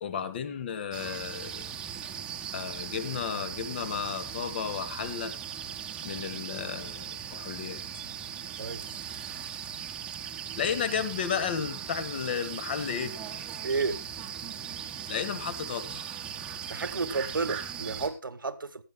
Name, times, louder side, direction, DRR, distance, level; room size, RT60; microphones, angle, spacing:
voice 1, 0.0-1.7 2.5-5.3 6.0-7.8 10.6-13.1 15.1-16.0, left 7 dB, 30° left, 1.8 m, -33 dB
sound 1, 0.9-18.1, right 8 dB, 10° right, 1.6 m, -39 dB
voice 2, 8.6-9.0 13.6-14.0 16.7-18.8, right 4 dB, 75° right, 1.7 m, -32 dB
18.5 x 14.5 x 2.3 m
figure-of-eight pair, 160°, 11 cm